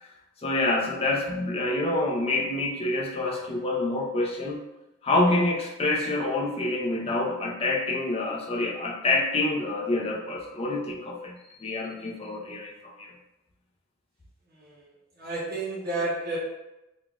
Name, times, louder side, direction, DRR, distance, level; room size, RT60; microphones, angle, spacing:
voice 1, 0.4-4.6 5.0-13.1, left 2 dB, 30° left, -1 dB, 0.5 m, -27 dB
voice 2, 14.6-14.9 15.2-16.4, right 2 dB, 45° right, -7 dB, 0.8 m, -31 dB
3.6 x 2.2 x 2.3 m, 0.97 s
head